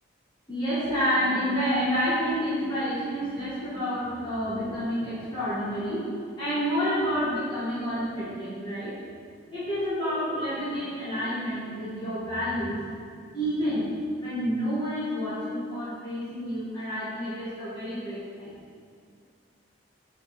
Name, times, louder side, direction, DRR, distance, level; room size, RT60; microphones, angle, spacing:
voice 1, 0.5-8.9 9.5-12.9 13.3-13.9 14.2-18.5, equal, 25° left, -13 dB, 2.0 m, -29 dB
6.9 x 5.0 x 6.0 m, 2.1 s
head